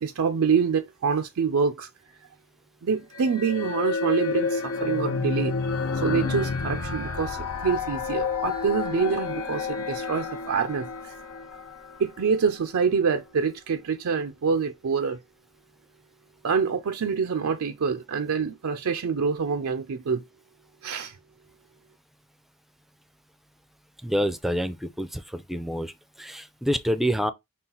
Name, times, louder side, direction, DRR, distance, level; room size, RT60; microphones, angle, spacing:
voice 1, 0.0-1.9 2.8-5.6 6.0-11.1 12.0-15.2 16.4-20.2 20.8-21.2, right 6 dB, 80° right, 0.5 m, -26 dB
sound 1, 3.1-12.6, left 4 dB, 90° left, 0.9 m, -31 dB
sound 2, 4.4-9.9 10.2-10.3 10.5-10.6 10.9-11.0, left 4 dB, 60° left, 0.5 m, -32 dB
voice 2, 24.0-25.9 26.2-27.3, equal, ahead, 0.4 m, -27 dB
5.5 x 2.5 x 3.8 m
head